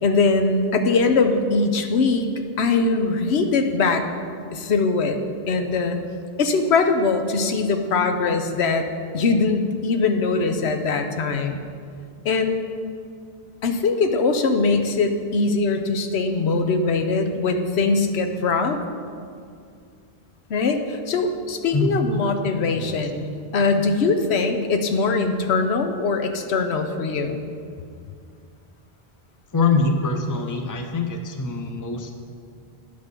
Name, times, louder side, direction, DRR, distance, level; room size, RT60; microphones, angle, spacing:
voice 1, 0.0-2.2 2.6-4.0 4.5-5.2 5.5-6.0 6.4-8.9 9.1-11.6 12.2-12.6 13.6-18.8 20.5-23.3 23.5-27.4, left 4 dB, 80° left, 6 dB, 1.0 m, -21 dB
voice 2, 21.7-22.2 22.7-22.9 29.5-32.1, left 3 dB, 20° left, 4 dB, 0.6 m, -24 dB
10.5 x 5.3 x 6.7 m, 2.3 s
omnidirectional pair, 1.1 m